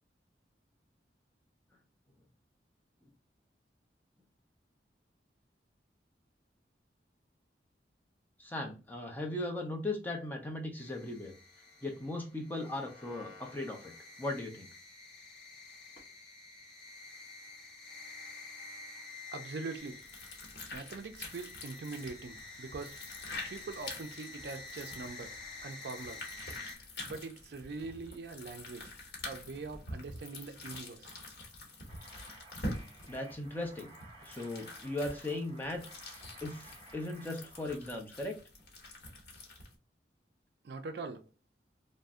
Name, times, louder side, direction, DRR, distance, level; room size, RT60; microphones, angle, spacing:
voice 1, 8.4-11.3 11.8-13.9 14.2-14.7 33.1-33.9 34.2-35.8 36.1-38.4, left 2 dB, 10° left, 0.5 m, -38 dB
sound 1, 10.8-26.8, left 3 dB, 25° left, 0.9 m, -49 dB
voice 2, 19.3-20.0 20.7-23.0 23.5-26.6 27.1-28.9 29.2-31.2 40.6-41.2, right 3 dB, 65° right, 0.4 m, -43 dB
sound 2, 19.8-39.7, left 2 dB, 65° left, 0.9 m, -46 dB
sound 3, 31.8-37.8, right 2 dB, 30° right, 0.7 m, -56 dB
2.5 x 2.0 x 3.4 m
head